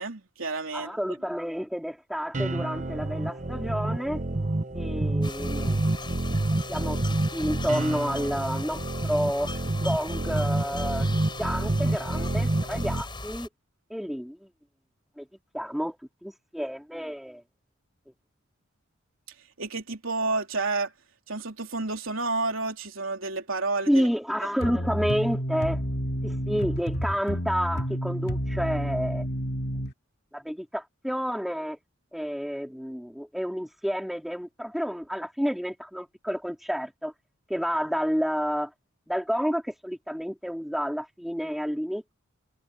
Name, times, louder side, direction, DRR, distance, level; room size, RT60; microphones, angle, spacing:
voice 1, 0.0-1.0 19.6-20.9 21.3-24.1, right 3 dB, 70° right, 3.8 m, -30 dB
voice 2, 0.7-4.2 4.7-5.8 6.7-7.0 7.3-9.5 9.8-11.1 11.4-13.5 13.9-14.4 15.2-15.3 15.5-16.0 16.2-17.4 23.9-25.8 26.2-29.3 30.3-31.8 32.1-37.1 37.5-38.7 39.1-42.1, equal, ahead, 3.5 m, -30 dB
sound 1, 2.3-13.0, right 2 dB, 35° right, 1.1 m, -28 dB
sound 2, 5.2-13.5, left 3 dB, 25° left, 5.9 m, -40 dB
sound 3, 24.6-29.9, equal, 50° left, 2.5 m, -30 dB
head